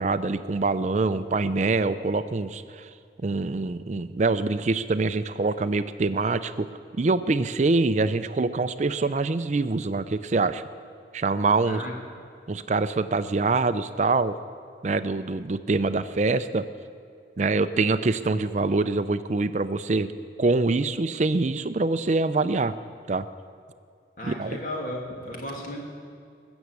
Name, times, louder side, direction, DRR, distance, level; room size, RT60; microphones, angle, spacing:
voice 1, 0.0-2.9 3.2-6.7 6.9-10.6 11.1-11.8 12.5-14.3 14.8-16.6 17.4-20.1 20.4-22.7 23.1-23.3 24.2-24.6, right 3 dB, 40° right, 12 dB, 0.4 m, -25 dB
voice 2, 24.2-25.8, left 1 dB, 45° left, -1 dB, 2.5 m, -34 dB
20.5 x 7.1 x 8.2 m, 2.3 s
head